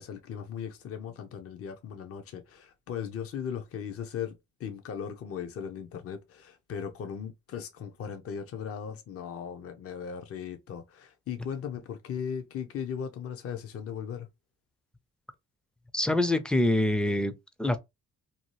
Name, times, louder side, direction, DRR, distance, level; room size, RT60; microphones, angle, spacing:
voice 1, 0.0-4.3 4.6-14.3, left 7 dB, 50° left, 0.6 m, -37 dB
voice 2, 15.9-17.3 17.6-17.8, left 1 dB, 5° left, 0.4 m, -25 dB
2.7 x 2.3 x 3.0 m
cardioid pair, 90°, 30 cm